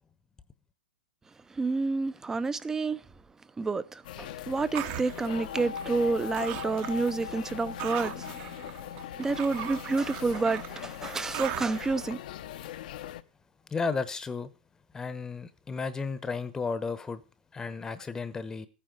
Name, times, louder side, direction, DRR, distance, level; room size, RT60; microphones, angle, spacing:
voice 1, 1.6-3.0 3.6-8.5 9.2-12.2, right 3 dB, 10° right, 0.7 m, -29 dB
sound 1, 4.0-13.2, left 12 dB, 55° left, 0.9 m, -41 dB
sound 2, 4.7-6.1 6.4-7.1 7.4-11.9, right 13 dB, 40° right, 1.0 m, -39 dB
sound 3, 5.3-12.7, left 6 dB, 85° left, 3.1 m, -44 dB
voice 2, 13.7-14.5 14.9-17.2 17.5-18.7, left 4 dB, 10° left, 1.0 m, -33 dB
14.5 x 9.2 x 6.3 m
hypercardioid pair, 130°, 5 cm